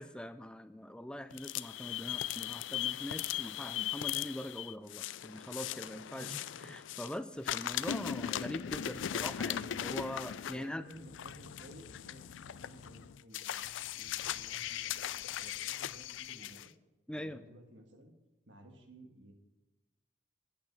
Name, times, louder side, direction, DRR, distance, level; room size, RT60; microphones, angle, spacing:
voice 1, 0.0-6.3 6.6-10.8 17.1-17.4, left 1 dB, 5° left, 11 dB, 0.4 m, -42 dB
sound 1, 1.3-7.2 7.4-16.7, left 11 dB, 85° left, 0.4 m, -39 dB
voice 2, 6.1-6.7 10.4-16.7 17.1-18.1 18.5-19.3, right 1 dB, 85° right, 4 dB, 1.6 m, -55 dB
8.8 x 8.3 x 5.8 m, 1.1 s
head